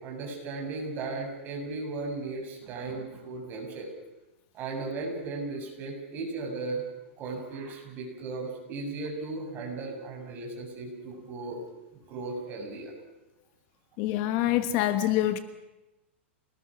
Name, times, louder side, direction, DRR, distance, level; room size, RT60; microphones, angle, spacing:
voice 1, 0.0-3.9 4.5-6.8 7.2-11.6 11.9-12.9, right 3 dB, 30° right, 1 dB, 7.2 m, -36 dB
voice 2, 14.0-15.4, left 13 dB, 40° left, 11 dB, 1.4 m, -25 dB
28.0 x 19.5 x 6.3 m, 0.99 s
hypercardioid pair, 145°, 7 cm